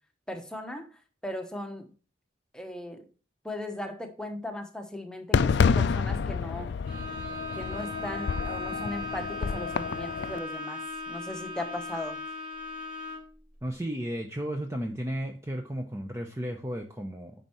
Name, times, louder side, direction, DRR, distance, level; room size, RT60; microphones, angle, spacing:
voice 1, 0.3-1.9 2.5-3.1 3.4-6.7 7.5-12.2, left 1 dB, 5° left, 4 dB, 1.0 m, -38 dB
Fireworks, 5.3-10.4, left 5 dB, 60° left, 0.4 m, -28 dB
Bowed string instrument, 6.8-13.4, left 3 dB, 45° right, 2.9 m, -38 dB
voice 2, 13.6-17.3, equal, 15° right, 3 dB, 0.7 m, -34 dB
9.2 x 5.4 x 3.0 m, 0.35 s
head